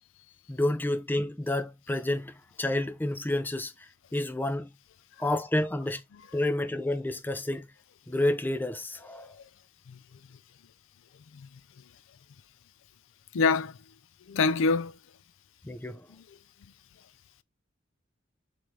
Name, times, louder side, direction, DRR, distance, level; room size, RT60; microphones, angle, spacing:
voice 1, 0.5-3.7 4.1-4.7 5.2-6.0 6.3-7.7 8.1-9.3 15.6-16.1, left 1 dB, 10° left, 0.5 m, -29 dB
voice 2, 9.1-9.4 9.9-10.0 11.3-11.5 13.3-13.8 14.3-15.0, left 4 dB, 70° left, 0.4 m, -26 dB
4.7 x 2.6 x 4.3 m
head